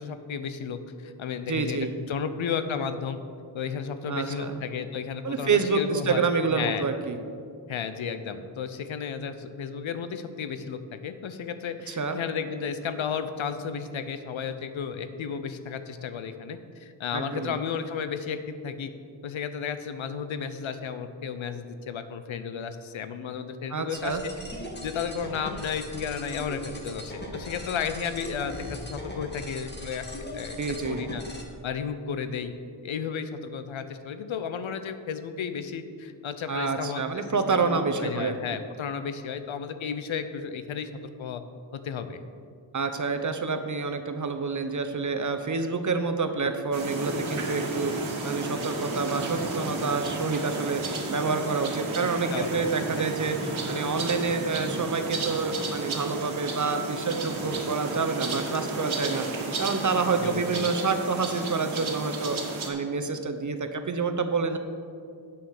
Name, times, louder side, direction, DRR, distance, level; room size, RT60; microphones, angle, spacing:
voice 1, 0.0-1.8 2.1-3.2 3.5-6.2 6.5-6.8 7.7-18.9 19.2-24.2 24.8-30.0 30.3-30.6 30.9-31.2 31.6-32.5 32.8-37.2 37.5-41.4 41.7-42.2 52.3-53.1 60.2-60.6, left 6 dB, 85° left, 10 dB, 0.7 m, -33 dB
voice 2, 1.5-1.9 4.0-4.6 5.2-7.2 11.9-12.2 17.1-17.6 23.7-24.2 30.6-31.0 36.5-38.3 42.7-64.6, right 4 dB, 40° right, 7 dB, 0.8 m, -28 dB
sound 1, 23.9-31.4, left 1 dB, 20° left, 1.7 m, -39 dB
sound 2, 46.7-62.7, right 3 dB, 85° right, 1.5 m, -33 dB
8.5 x 6.4 x 6.5 m, 2.3 s
wide cardioid pair, 75°, 46 cm